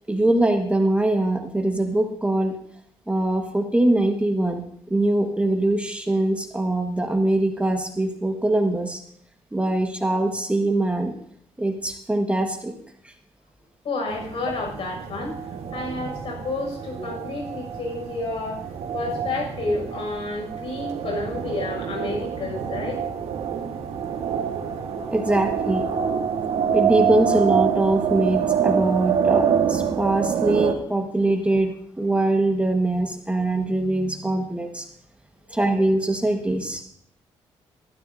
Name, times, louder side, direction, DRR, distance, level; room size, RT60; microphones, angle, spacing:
voice 1, 0.1-2.6 3.1-4.6 4.9-9.0 9.5-11.1 11.6-12.7 13.0-13.1 25.1-25.8 26.7-34.9 35.5-36.8, right 1 dB, 10° right, 3 dB, 1.5 m, -22 dB
voice 2, 13.8-15.3 15.7-18.6 18.9-23.0 35.5-35.6, left 2 dB, 65° left, 1 dB, 6.3 m, -30 dB
sound 1, 14.1-30.7, right 8 dB, 80° right, 1.6 m, -26 dB
19.5 x 12.5 x 2.7 m, 0.67 s
cardioid pair, 95°, 10 cm